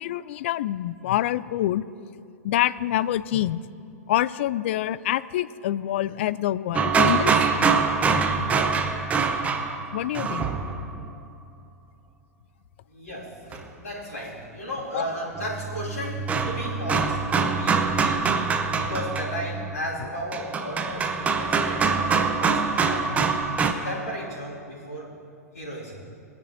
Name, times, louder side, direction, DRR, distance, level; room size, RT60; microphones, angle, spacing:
voice 1, 0.0-1.8 2.4-3.6 4.1-7.3 9.9-10.5 14.9-15.0 23.1-23.3 23.6-23.7, left 13 dB, 45° left, 18 dB, 0.3 m, -26 dB
sound 1, 6.7-11.1 13.5-13.6 15.4-23.7, right 5 dB, 15° right, 0.7 m, -24 dB
voice 2, 12.9-18.4 18.7-23.1 23.8-25.1 25.5-25.9, equal, 65° left, -10 dB, 3.3 m, -35 dB
19.5 x 10.0 x 3.0 m, 2.4 s
figure-of-eight pair, 105°, 9 cm